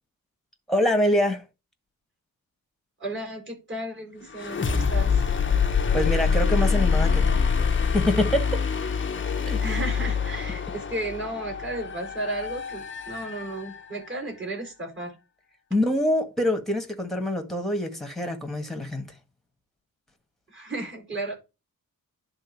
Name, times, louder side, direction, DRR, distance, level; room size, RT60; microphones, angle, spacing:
voice 1, 0.7-1.4 5.9-7.4 7.9-8.7 9.5-9.6 15.7-19.1, left 1 dB, ahead, 1.7 m, -25 dB
voice 2, 3.0-5.3 9.6-15.1 20.5-21.3, right 2 dB, 35° right, 4.7 m, -34 dB
sound 1, 4.3-14.1, left 5 dB, 35° left, 0.9 m, -25 dB
10.5 x 3.8 x 5.3 m
wide cardioid pair, 180°, 35 cm